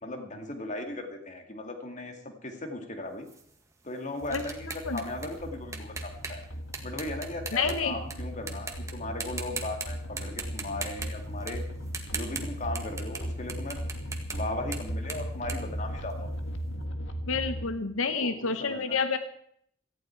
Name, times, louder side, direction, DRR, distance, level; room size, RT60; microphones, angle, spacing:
voice 1, 0.0-3.3 3.8-6.4 6.8-11.6 12.1-13.8 14.3-16.3 18.1-19.0, left 2 dB, 35° left, 5 dB, 2.3 m, -37 dB
sound 1, 3.3-8.1 8.5-8.9 9.2-9.9 10.2-13.2 13.5-16.5, right 4 dB, 15° right, 1.8 m, -39 dB
sound 2, 4.2-17.7, equal, 65° left, 1.8 m, -37 dB
voice 2, 7.5-8.0 17.3-19.2, left 5 dB, 80° left, 10 dB, 1.0 m, -28 dB
17.5 x 14.5 x 4.5 m, 0.67 s
head